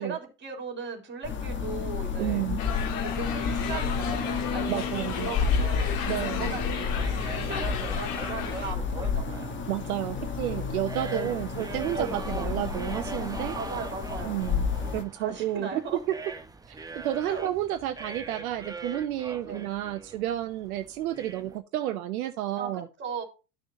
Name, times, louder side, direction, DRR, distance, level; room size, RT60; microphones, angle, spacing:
voice 1, 0.0-2.4 3.0-6.0 6.2-6.9 7.2-9.6 10.2-10.4 11.1-11.4 11.9-12.6 13.5-14.4 15.2-16.0 17.2-17.5 19.4-19.6 22.6-23.2, right 4 dB, 25° right, 3.5 m, -38 dB
sound 1, 1.2-15.0, left 5 dB, 25° left, 1.5 m, -31 dB
voice 2, 2.2-2.6 4.7-5.3 6.1-6.5 9.7-13.6 14.2-15.8 16.1-16.2 16.7-22.9, right 13 dB, 65° right, 0.9 m, -31 dB
sound 2, 2.6-8.7, left 7 dB, 45° left, 2.0 m, -35 dB
sound 3, 3.4-21.6, right 3 dB, 10° right, 0.8 m, -42 dB
13.0 x 6.2 x 2.8 m
figure-of-eight pair, 85°, 47 cm